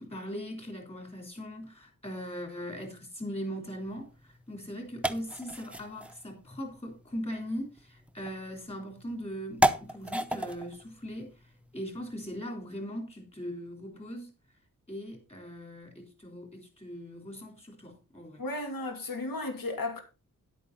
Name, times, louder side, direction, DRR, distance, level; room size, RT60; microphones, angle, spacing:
voice 1, 0.0-14.3 14.9-18.4, equal, 20° left, 3.4 m, -40 dB
sound 1, 3.8-12.4, equal, 5° right, 0.6 m, -35 dB
voice 2, 18.4-20.0, left 2 dB, 80° left, 2.7 m, -34 dB
11.0 x 8.4 x 4.0 m
wide cardioid pair, 155°, 34 cm